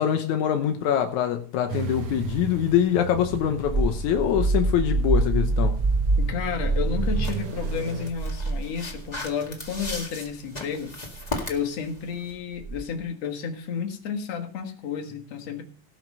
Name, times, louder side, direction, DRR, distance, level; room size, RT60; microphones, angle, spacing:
voice 1, 0.0-5.8, left 9 dB, 85° left, 2.3 m, -24 dB
sound 1, 1.7-8.1, right 5 dB, 60° right, 1.8 m, -36 dB
sound 2, 3.3-9.2 9.6-10.0 11.1-11.4 12.6-13.0, right 2 dB, 25° right, 2.3 m, -26 dB
voice 2, 6.2-10.9 11.5-15.6, left 6 dB, 65° left, 2.7 m, -31 dB
sound 3, 7.2-12.3, left 2 dB, 15° left, 1.6 m, -37 dB
18.0 x 6.0 x 5.4 m
omnidirectional pair, 3.3 m